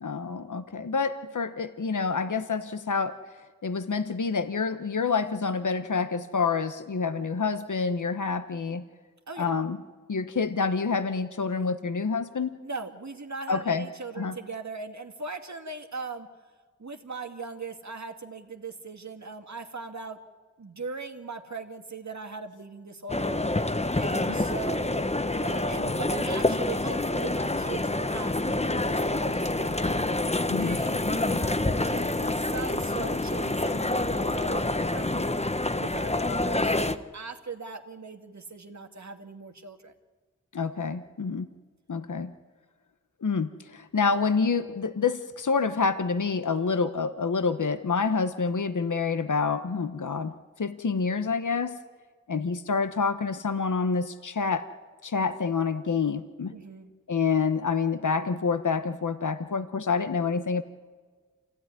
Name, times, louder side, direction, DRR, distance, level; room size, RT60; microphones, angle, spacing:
voice 1, 0.0-3.2 3.6-8.8 9.4-9.8 10.1-12.6 13.5-13.9 14.2-14.4 24.3-24.4 30.5-30.8 40.5-41.5 41.9-42.3 43.2-50.3 50.6-51.8 52.3-54.7 55.0-56.5 57.1-60.6, left 5 dB, 75° left, 10 dB, 1.1 m, -27 dB
voice 2, 12.6-16.3 16.8-20.2 20.6-23.4 23.9-29.9 30.6-35.3 35.8-39.9 56.5-56.9, right 3 dB, 65° right, 5 dB, 2.1 m, -39 dB
sound 1, 23.1-37.0, left 2 dB, 20° left, 1.1 m, -27 dB
27.5 x 16.5 x 9.8 m, 1.5 s
wide cardioid pair, 50°, 31 cm